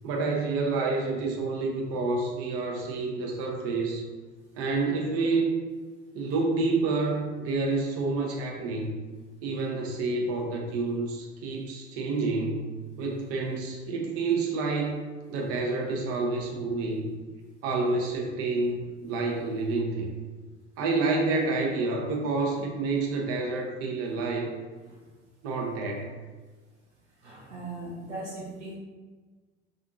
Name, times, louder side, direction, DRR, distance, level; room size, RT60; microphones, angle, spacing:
voice 1, 0.0-4.1 4.6-5.5 6.1-8.9 9.4-12.7 13.0-17.1 17.6-20.1 20.8-24.5 25.4-26.1, right 3 dB, 45° right, 1 dB, 0.6 m, -28 dB
voice 2, 27.2-28.8, right 2 dB, 80° right, -5 dB, 0.8 m, -39 dB
2.5 x 2.4 x 2.5 m, 1.3 s
figure-of-eight pair, 65°, 35 cm